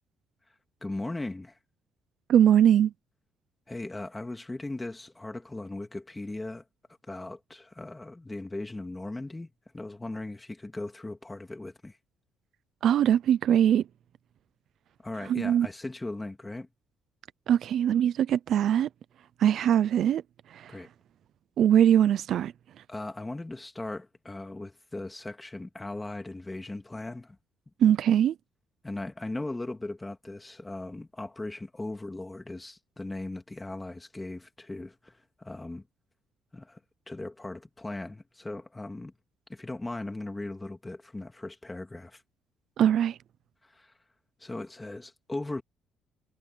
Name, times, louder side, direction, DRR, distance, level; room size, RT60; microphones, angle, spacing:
voice 1, 0.8-1.6 3.7-6.6 7.1-12.0 15.0-16.7 20.7-20.9 22.9-27.4 28.8-35.8 36.5-36.8 37.1-39.1 39.5-42.2 43.6-43.9 44.4-45.6, left 2 dB, 10° left, 2.5 m, -38 dB
voice 2, 2.3-2.9 12.8-13.8 15.3-15.7 17.5-18.9 19.4-20.2 20.5-20.7 21.6-22.5 27.8-28.3 42.8-43.2, right 10 dB, 55° right, 0.5 m, -22 dB
cardioid pair, 140°, 0 cm